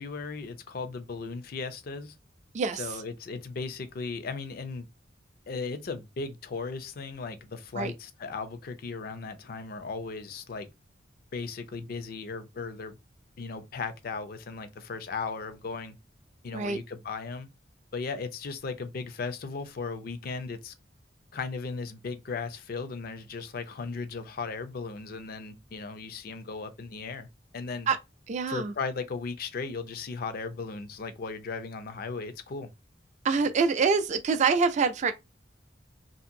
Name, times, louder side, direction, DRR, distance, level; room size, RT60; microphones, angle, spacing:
voice 1, 0.0-2.1 2.8-4.9 5.5-10.7 11.3-13.0 13.4-16.0 16.4-17.5 17.9-20.7 21.3-27.3 27.5-27.9 28.5-32.7, left 4 dB, 55° left, 0.4 m, -36 dB
voice 2, 2.5-3.0 7.7-7.9 16.5-16.8 27.9-28.0 28.3-28.7 33.2-35.1, right 5 dB, 40° right, 0.3 m, -25 dB
2.7 x 2.5 x 2.6 m
head